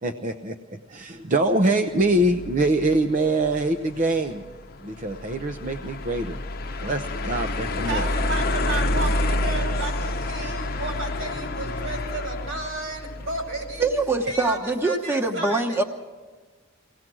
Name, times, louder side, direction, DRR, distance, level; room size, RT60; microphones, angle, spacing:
voice 1, 0.0-4.4 4.8-6.4 6.8-8.1, right 2 dB, 40° right, 6 dB, 0.8 m, -24 dB
sound 1, 2.0-14.2, left 2 dB, 50° left, 0.8 m, -29 dB
voice 2, 7.8-13.9 14.3-15.8, right 2 dB, 75° right, 3 dB, 4.9 m, -33 dB
voice 3, 13.8-15.8, right 3 dB, 10° right, 2 dB, 1.1 m, -23 dB
23.5 x 18.0 x 6.2 m, 1.4 s
head